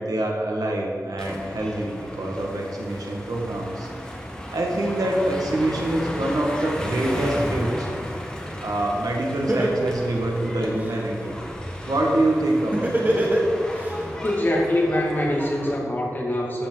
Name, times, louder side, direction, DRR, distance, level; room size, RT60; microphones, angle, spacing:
voice 1, 0.0-3.9 4.5-7.9 8.6-11.3 11.9-13.2, right 1 dB, 80° right, -1 dB, 1.7 m, -25 dB
sound 1, 1.2-15.8, equal, 15° left, 1.5 m, -34 dB
Laughter, 9.0-9.1 9.5-10.9 12.7-13.9, right 1 dB, 30° right, 1.7 m, -23 dB
voice 2, 14.2-16.7, left 1 dB, 30° left, -2 dB, 2.3 m, -24 dB
13.5 x 7.1 x 3.9 m, 2.2 s
wide cardioid pair, 70°, 6 cm